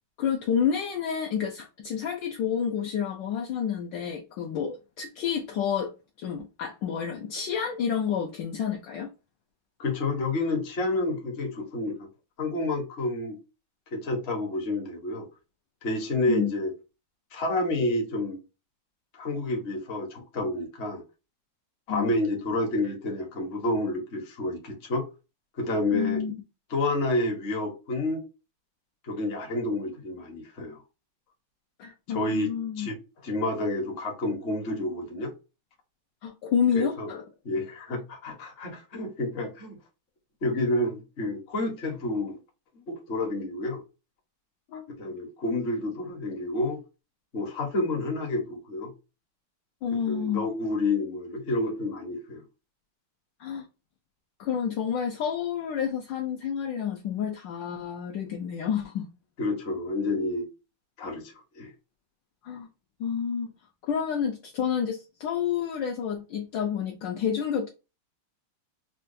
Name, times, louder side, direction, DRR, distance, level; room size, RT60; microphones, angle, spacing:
voice 1, 0.2-5.9 6.2-9.1 16.3-16.5 21.9-22.1 25.9-26.3 31.8-32.9 36.2-37.3 44.7-44.8 49.8-50.4 53.4-53.7 54.4-59.1 62.4-62.7 63.0-63.5 63.8-67.7, left 7 dB, 75° left, 1.1 m, -29 dB
voice 2, 9.8-12.1 12.4-13.4 13.9-15.3 15.8-16.7 17.3-18.4 19.1-21.0 21.9-25.0 25.6-26.2 26.7-28.2 29.0-30.8 32.1-32.5 32.8-32.9 33.2-35.3 36.7-37.1 37.4-39.8 40.4-42.4 42.7-43.8 45.0-46.8 47.3-48.9 50.1-52.4 59.4-60.5 61.0-61.7, left 2 dB, 45° left, 0.9 m, -29 dB
4.3 x 2.3 x 2.6 m
omnidirectional pair, 2.4 m